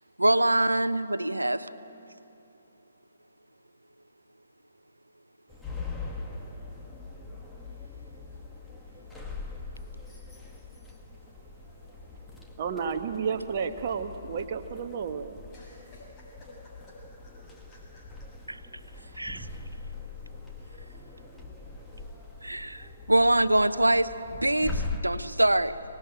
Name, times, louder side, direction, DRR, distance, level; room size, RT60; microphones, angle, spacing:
voice 1, 0.2-1.7 18.5-18.6 19.2-19.4 22.4-24.1 24.4-25.8, right 1 dB, 85° right, 13 dB, 0.9 m, -24 dB
sound 1, 5.5-25.0, left 3 dB, 5° left, 1.8 m, -42 dB
voice 2, 12.6-15.4, right 6 dB, 40° right, 6 dB, 1.3 m, -31 dB
voice 3, 15.5-18.3 18.9-19.0, left 1 dB, 20° left, -4 dB, 7.2 m, -54 dB
24.5 x 19.5 x 8.9 m, 2.9 s
figure-of-eight pair, 135°, 0 cm